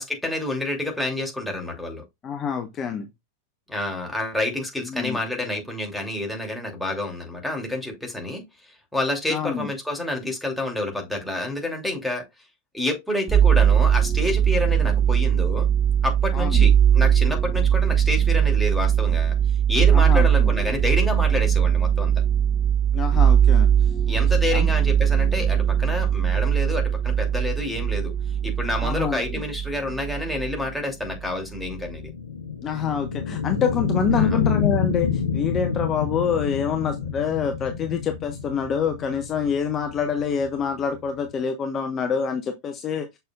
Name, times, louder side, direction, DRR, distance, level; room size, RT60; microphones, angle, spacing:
voice 1, 0.0-2.0 3.7-12.2 12.7-15.7 16.0-19.4 19.7-22.1 24.1-28.1 28.4-32.1 34.1-34.4, left 2 dB, ahead, 2.7 m, -28 dB
voice 2, 2.2-3.1 4.9-5.2 9.3-9.7 16.3-16.7 19.9-20.5 22.9-23.7 24.5-24.7 28.8-29.4 32.6-43.1, left 7 dB, 25° left, 1.0 m, -26 dB
sound 1, 13.3-30.7 31.0-31.8, right 9 dB, 30° right, 2.0 m, -20 dB
sound 2, 30.7-41.4, left 6 dB, 70° left, 0.9 m, -28 dB
6.7 x 6.6 x 2.3 m
figure-of-eight pair, 90°, 0 cm